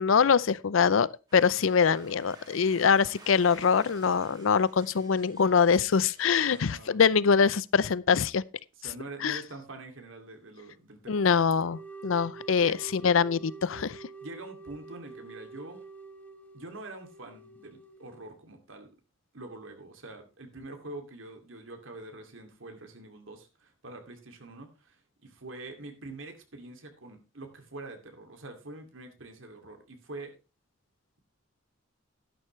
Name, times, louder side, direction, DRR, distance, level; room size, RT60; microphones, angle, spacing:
voice 1, 0.0-8.4 9.2-9.4 11.1-14.0, left 6 dB, 85° left, 0.5 m, -24 dB
sound 1, 1.3-6.7, right 3 dB, 20° right, 2.3 m, -54 dB
voice 2, 6.5-7.0 8.8-11.3 12.6-12.8 14.2-15.9 16.5-18.9 19.3-30.3, right 2 dB, 80° right, 2.5 m, -45 dB
sound 2, 11.6-18.3, right 4 dB, 10° left, 1.5 m, -47 dB
12.0 x 11.0 x 3.2 m
head